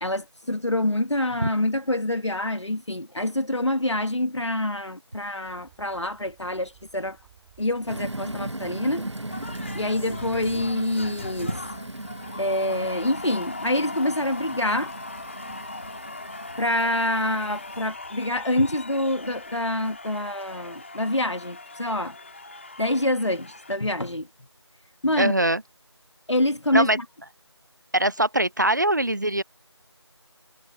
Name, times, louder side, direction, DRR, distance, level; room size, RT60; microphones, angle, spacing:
voice 1, 0.0-7.2 7.6-9.1 9.7-11.5 12.4-14.9 16.6-22.2 22.8-24.3 25.0-25.3 26.3-27.0, left 1 dB, 75° left, 1.6 m, -26 dB
sound 1, 5.4-20.1, right 14 dB, 5° right, 5.9 m, -60 dB
sound 2, 7.9-17.9, right 1 dB, 75° right, 1.4 m, -38 dB
sound 3, 9.3-23.8, left 3 dB, 25° left, 2.7 m, -39 dB
voice 2, 25.2-25.6 26.7-27.0 27.9-29.4, right 1 dB, 40° right, 0.8 m, -22 dB
figure-of-eight pair, 170°, 15 cm